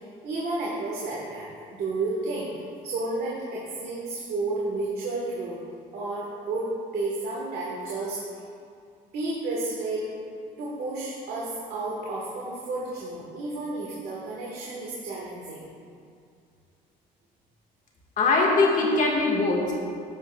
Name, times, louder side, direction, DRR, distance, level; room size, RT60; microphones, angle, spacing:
voice 1, 0.2-2.5 2.8-5.6 5.9-8.2 9.1-10.1 10.6-15.6, right 2 dB, 70° right, -5 dB, 1.6 m, -31 dB
voice 2, 18.2-19.7, left 3 dB, 50° left, -2 dB, 1.8 m, -21 dB
11.0 x 7.9 x 2.4 m, 2.4 s
cardioid pair, 110°, 17 cm